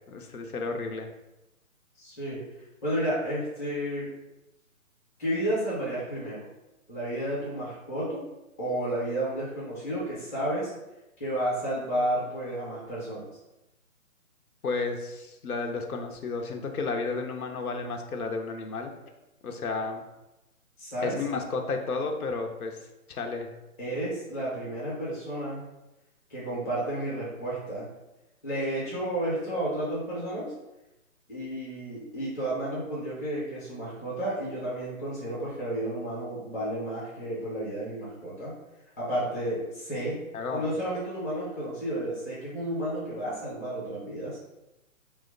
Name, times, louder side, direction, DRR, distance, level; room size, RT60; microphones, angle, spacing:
voice 1, 0.1-1.1 14.6-18.9 19.4-20.0 21.0-22.8 23.1-23.5 40.3-40.6, left 4 dB, 85° left, 4 dB, 0.7 m, -32 dB
voice 2, 2.0-2.4 2.8-4.1 5.2-6.4 6.9-8.2 8.6-10.7 11.2-13.3 20.8-21.2 23.8-25.6 26.3-27.9 28.4-30.5 31.3-38.5 39.0-40.2 40.5-44.4, right 1 dB, 10° left, -8 dB, 0.6 m, -31 dB
3.0 x 2.1 x 3.7 m, 0.96 s
hypercardioid pair, 150°, 43 cm